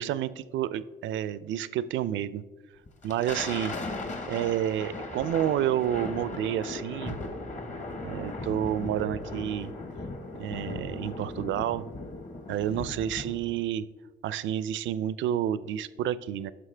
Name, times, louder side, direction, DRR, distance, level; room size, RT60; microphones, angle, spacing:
voice 1, 0.0-2.4 3.0-3.7 4.3-7.2 8.0-9.7 10.4-11.9 12.5-13.8 14.2-16.5, right 11 dB, 70° right, 17 dB, 0.4 m, -29 dB
Thunder, 2.9-13.6, left 2 dB, 40° left, 1.1 m, -37 dB
11.0 x 6.2 x 3.3 m, 1.2 s
cardioid pair, 90°, 20 cm